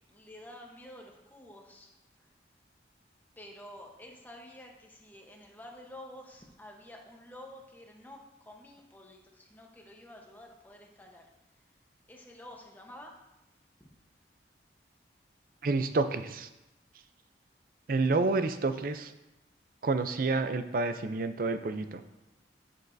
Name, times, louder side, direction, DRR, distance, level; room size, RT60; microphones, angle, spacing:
voice 1, 0.1-1.9 3.4-11.3 12.1-13.2 13.8-13.9, left 1 dB, 10° left, 0 dB, 1.0 m, -50 dB
voice 2, 15.6-16.5 17.9-19.1 19.8-22.0, right 3 dB, 50° right, 10 dB, 0.5 m, -29 dB
11.0 x 6.9 x 2.6 m, 0.98 s
head